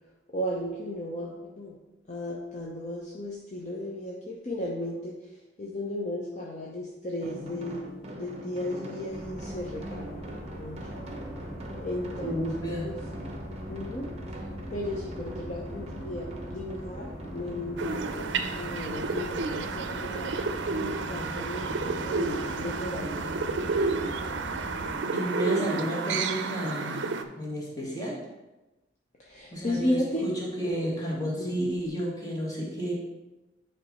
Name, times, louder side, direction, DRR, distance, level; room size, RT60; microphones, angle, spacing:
voice 1, 0.3-1.8 2.1-5.1 5.6-7.8 8.2-10.2 10.6-10.8 11.8-13.0 13.7-14.1 14.7-16.3 16.5-20.3 20.7-24.1 24.7-25.1 29.2-30.3 31.4-31.7, left 1 dB, 40° left, -3 dB, 0.7 m, -35 dB
sound 1, 7.2-24.5, right 1 dB, 35° right, 0.9 m, -43 dB
sound 2, 9.1-25.0, equal, 60° left, 2.2 m, -42 dB
voice 2, 12.2-12.9 25.1-28.2 29.5-32.9, equal, 20° left, -4 dB, 1.7 m, -32 dB
sound 3, 17.8-27.2, right 4 dB, 75° right, 0.5 m, -31 dB
8.7 x 3.3 x 4.2 m, 1.1 s
head